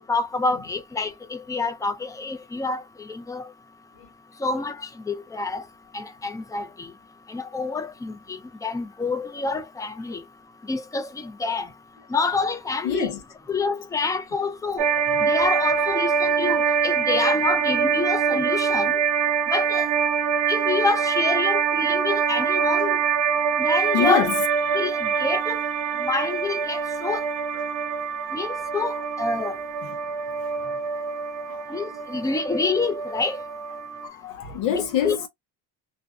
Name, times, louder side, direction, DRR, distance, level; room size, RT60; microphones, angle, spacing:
voice 1, 0.1-2.8 3.1-3.5 4.4-5.6 5.9-6.9 7.3-10.2 10.7-11.7 12.1-13.1 13.5-14.9 15.2-19.0 19.5-19.9 20.5-22.9 23.6-24.3 24.7-25.6 26.0-27.2 28.3-29.6 31.7-33.4 35.0-35.3, left 4 dB, 10° left, 0.4 m, -27 dB
voice 2, 12.8-13.2 23.9-24.3 31.5-31.8 34.0-35.3, left 8 dB, 85° left, 0.9 m, -25 dB
sound 1, 14.8-34.1, right 6 dB, 70° right, 0.6 m, -24 dB
2.6 x 2.1 x 2.4 m
cardioid pair, 105°, 44 cm